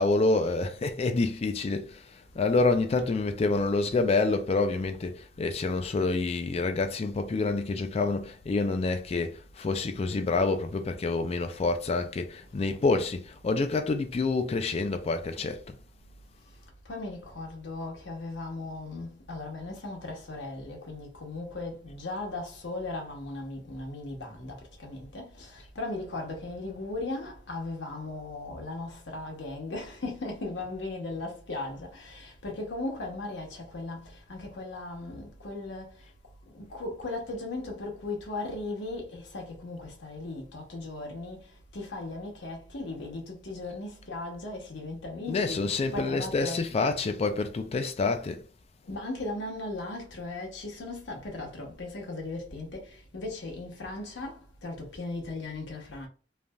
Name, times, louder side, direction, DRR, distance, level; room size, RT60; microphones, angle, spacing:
voice 1, 0.0-15.8 45.3-48.4, left 3 dB, 35° left, 0.3 m, -27 dB
voice 2, 16.8-36.0 36.5-46.6 48.9-56.1, left 2 dB, 85° left, 0.9 m, -37 dB
3.2 x 2.5 x 2.2 m
head